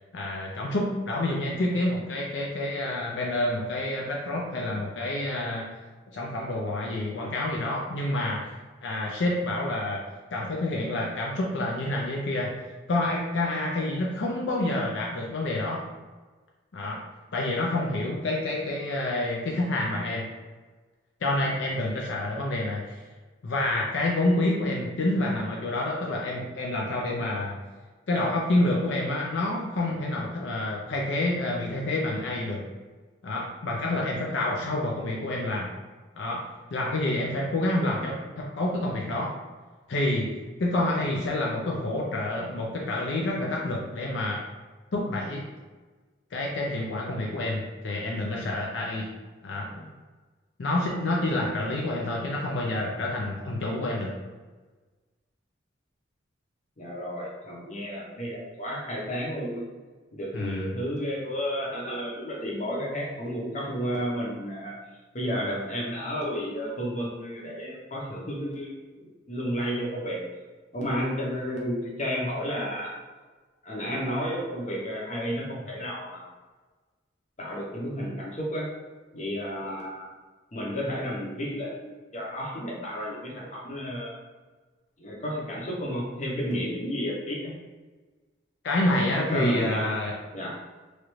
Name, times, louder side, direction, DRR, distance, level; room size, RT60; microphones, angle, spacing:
voice 1, 0.1-5.7 6.1-8.5 8.8-10.0 10.3-12.5 12.9-15.8 16.7-17.0 17.3-20.3 21.2-23.0 23.4-27.6 28.1-32.6 33.2-35.7 36.2-36.4 36.7-39.3 39.9-40.3 40.6-44.4 44.9-45.4 46.3-49.1 49.4-49.7 50.6-54.2 60.3-60.7 88.6-90.2, left 1 dB, 70° left, -2 dB, 0.5 m, -28 dB
voice 2, 56.8-59.6 60.1-64.8 65.1-70.2 70.7-72.9 73.6-76.3 77.4-78.7 79.1-80.1 80.5-84.2 85.0-87.5 89.3-89.9 90.3-90.6, equal, 35° left, -3 dB, 0.7 m, -32 dB
3.1 x 2.5 x 3.1 m, 1.3 s
head